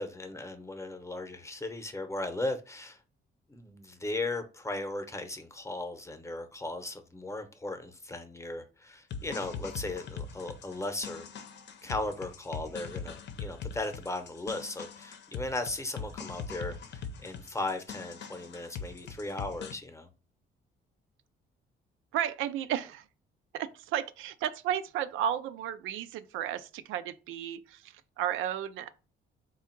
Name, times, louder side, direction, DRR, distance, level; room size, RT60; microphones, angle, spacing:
voice 1, 0.0-3.0 3.5-11.3 11.8-20.1, left 2 dB, 15° left, 0.8 m, -37 dB
sound 1, 9.1-19.7, left 5 dB, 65° left, 0.7 m, -42 dB
voice 2, 22.1-23.1 23.5-28.9, right 10 dB, 90° right, 0.4 m, -33 dB
3.5 x 2.3 x 4.4 m
cardioid pair, 90°, 20 cm